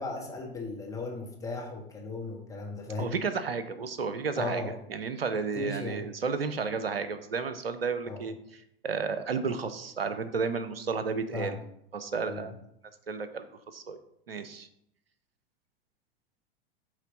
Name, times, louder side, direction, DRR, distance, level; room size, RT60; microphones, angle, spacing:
voice 1, 0.0-3.1 4.4-4.8 5.5-6.1 8.0-8.3 11.3-11.6 12.3-12.5, left 3 dB, 10° left, -2 dB, 1.5 m, -36 dB
voice 2, 3.0-4.6 4.9-11.6 11.9-12.6 13.1-14.0 14.3-14.7, right 5 dB, 80° right, 11 dB, 0.7 m, -32 dB
8.3 x 3.3 x 4.0 m, 0.75 s
figure-of-eight pair, 85°, 30 cm